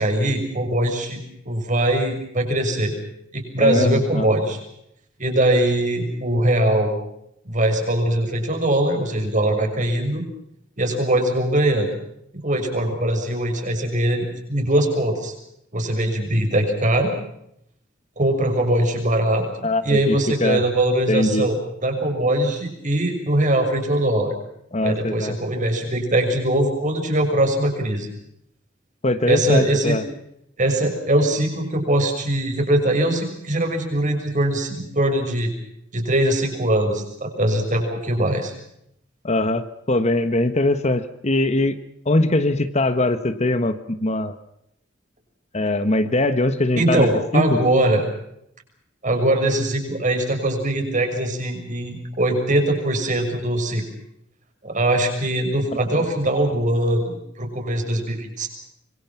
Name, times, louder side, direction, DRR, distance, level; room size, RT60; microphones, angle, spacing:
voice 1, 0.0-2.9 3.3-4.6 5.2-6.9 7.4-10.2 10.8-11.9 12.4-15.3 15.7-17.1 18.2-19.4 19.8-24.3 24.8-28.1 29.3-30.0 30.6-35.5 35.9-38.5 46.8-48.0 49.0-53.8 54.6-58.5, right 1 dB, 40° right, 4 dB, 6.4 m, -21 dB
voice 2, 3.6-4.3 19.6-20.6 21.1-21.5 24.7-25.4 29.0-30.0 39.2-41.8 42.0-44.4 45.5-47.6, left 2 dB, 35° left, 11 dB, 1.3 m, -21 dB
26.0 x 23.5 x 5.9 m, 0.75 s
head